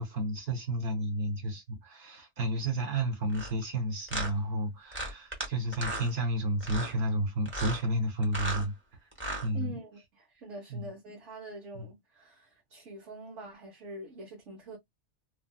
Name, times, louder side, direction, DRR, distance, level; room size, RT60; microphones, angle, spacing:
voice 1, 0.0-8.7 9.0-9.1 9.4-9.8 10.7-10.9 11.7-11.8, right 1 dB, 65° right, 1.2 m, -31 dB
sound 1, 3.3-3.5 4.1-4.3 4.9-5.5 5.7-6.1 6.6-6.9 7.5-7.8 8.2-8.7 9.1-9.5, right 1 dB, 10° right, 0.8 m, -35 dB
voice 2, 9.5-14.8, right 1 dB, 90° right, 1.3 m, -45 dB
3.5 x 2.3 x 2.2 m
omnidirectional pair, 1.2 m